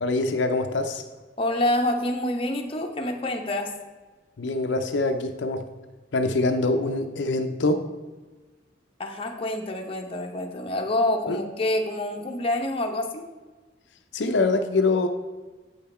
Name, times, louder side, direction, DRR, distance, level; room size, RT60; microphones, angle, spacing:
voice 1, 0.0-1.0 4.4-5.6 6.1-7.8 11.3-11.4 14.1-15.1, left 2 dB, 75° left, 6 dB, 0.6 m, -24 dB
voice 2, 1.4-3.7 9.0-13.3, left 1 dB, 30° left, 2 dB, 0.8 m, -27 dB
7.9 x 5.6 x 4.2 m, 1.3 s
head